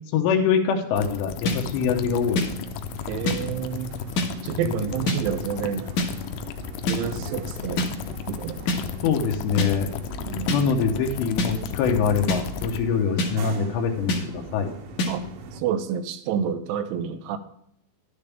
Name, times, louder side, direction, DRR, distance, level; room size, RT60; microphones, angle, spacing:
voice 1, 0.1-2.5 4.6-5.0 9.0-9.9 10.5-14.7, left 6 dB, 75° left, 1 dB, 2.9 m, -24 dB
sound 1, 1.0-12.8, left 8 dB, 90° left, 3.2 m, -35 dB
sound 2, 1.4-15.6, right 3 dB, 70° right, 3.0 m, -41 dB
sound 3, 1.5-1.6 2.4-2.5 3.3-3.4 4.2-4.3 5.1-5.2 6.0-6.1 6.9-7.0 7.8-7.9 8.7-8.8 9.6-9.7 10.5-10.6 11.4-11.5 12.3-12.4 13.2-13.3 14.1-14.2 15.0-15.1, left 2 dB, 60° left, 2.2 m, -23 dB
voice 2, 3.1-3.9 4.4-5.9 6.9-7.8 8.3-8.6 10.3-10.5 15.1-15.3 15.6-17.4, right 8 dB, 85° right, 10 dB, 3.2 m, -28 dB
11.5 x 9.9 x 3.5 m, 0.71 s
omnidirectional pair, 5.5 m